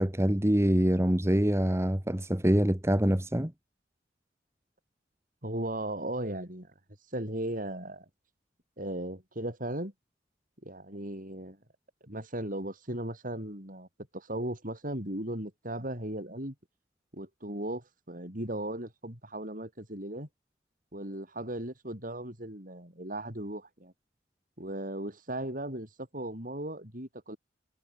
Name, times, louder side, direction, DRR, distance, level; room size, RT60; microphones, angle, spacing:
voice 1, 0.0-3.5, equal, 15° right, 1.3 m, -25 dB
voice 2, 5.4-6.7 7.1-8.0 8.8-9.9 10.6-11.6 12.0-13.9 14.1-16.5 17.1-20.3 20.9-23.9 24.6-27.4, right 1 dB, 45° right, 7.9 m, -37 dB
head